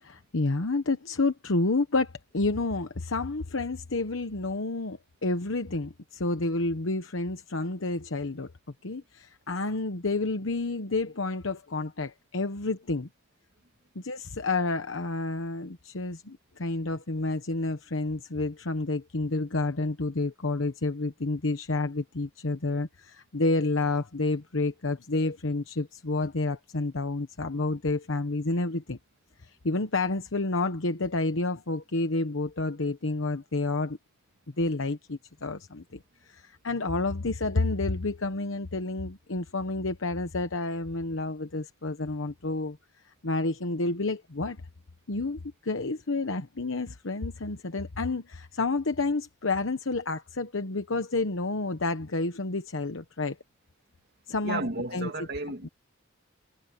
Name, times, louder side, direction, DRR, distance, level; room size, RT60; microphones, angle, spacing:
voice 1, 0.0-8.5 8.8-13.1 13.9-29.0 29.4-34.0 34.6-42.8 43.0-44.6 45.1-53.4 54.3-55.1 55.6-55.7, left 2 dB, 75° left, 1.1 m, -30 dB
voice 2, 54.4-55.7, right 2 dB, 55° right, 2.2 m, -33 dB
head